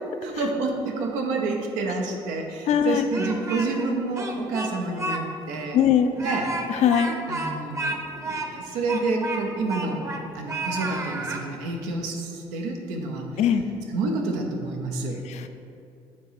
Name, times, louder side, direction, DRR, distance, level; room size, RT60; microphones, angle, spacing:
voice 1, 0.2-5.8 6.2-6.5 7.3-8.0 8.2-10.0 10.3-13.3 13.9-15.2, right 3 dB, 85° right, 2 dB, 0.8 m, -28 dB
voice 2, 2.7-3.1 5.7-6.1 6.7-7.2 13.4-13.7 15.3-15.5, left 9 dB, 60° left, 9 dB, 0.5 m, -21 dB
Speech, 2.9-3.9 4.2-5.2 5.5-5.6 6.1-10.2 10.5-11.4, right 2 dB, 25° right, 0.8 m, -31 dB
7.4 x 2.8 x 5.9 m, 2.6 s
supercardioid pair, 70°, 13 cm